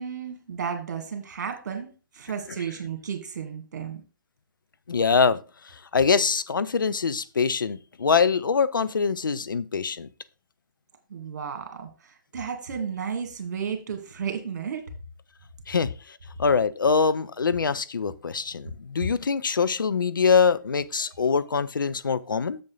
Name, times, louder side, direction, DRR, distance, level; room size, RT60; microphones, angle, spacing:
voice 1, 0.0-4.0 11.1-14.9, right 7 dB, 55° right, 2.1 m, -33 dB
voice 2, 4.9-5.4 5.6-10.1 15.7-22.6, left 5 dB, 70° left, 0.6 m, -24 dB
7.6 x 7.0 x 3.9 m
figure-of-eight pair, 125°, 11 cm